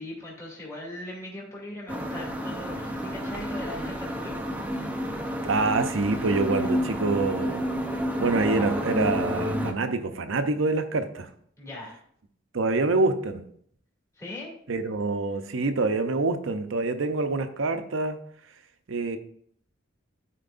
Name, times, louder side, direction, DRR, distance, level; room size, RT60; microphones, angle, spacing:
voice 1, 0.0-4.4 11.6-12.0 14.1-14.5, left 1 dB, 15° left, -6 dB, 2.3 m, -39 dB
sound 1, 1.9-9.7, equal, 10° right, 0.6 m, -30 dB
voice 2, 5.4-7.6 8.2-11.3 12.5-13.4 14.7-18.2 18.9-19.2, right 3 dB, 80° right, 8 dB, 0.7 m, -26 dB
12.5 x 4.5 x 2.5 m, 0.65 s
head